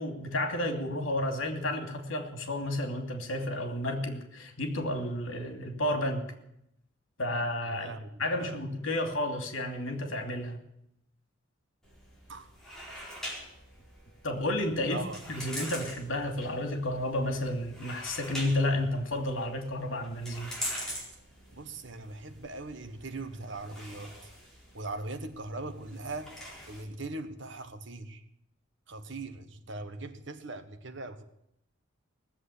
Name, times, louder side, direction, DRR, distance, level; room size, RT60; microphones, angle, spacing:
voice 1, 0.0-6.3 7.2-7.9 8.2-10.6 14.2-20.5, left 1 dB, 75° left, 4 dB, 2.8 m, -31 dB
voice 2, 7.7-8.7 12.3-12.5 14.9-15.5 21.5-24.2 24.7-26.3 26.7-28.2 28.9-31.2, right 2 dB, 65° right, 9 dB, 1.4 m, -40 dB
sound 1, 11.8-26.8, equal, 5° left, 4.4 m, -44 dB
18.5 x 7.8 x 9.9 m, 0.78 s
head